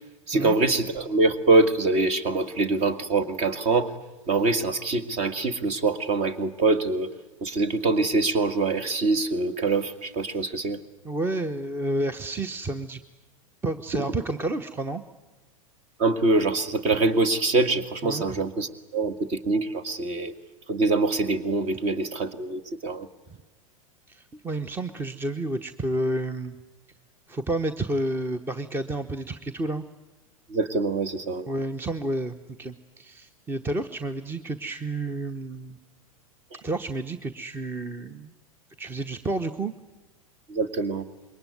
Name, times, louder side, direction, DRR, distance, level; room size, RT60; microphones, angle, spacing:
voice 1, 0.3-3.9 4.3-7.1 7.4-10.8 16.0-20.3 20.7-23.1 30.5-31.4 40.5-41.0, right 3 dB, 35° right, 11 dB, 2.0 m, -24 dB
voice 2, 11.0-13.0 13.6-15.0 18.0-18.4 24.1-26.6 27.3-29.8 31.5-35.8 36.6-38.3 38.8-39.7, right 2 dB, 10° right, 12 dB, 0.9 m, -30 dB
27.0 x 22.5 x 9.4 m, 1.1 s
figure-of-eight pair, 90°, 18 cm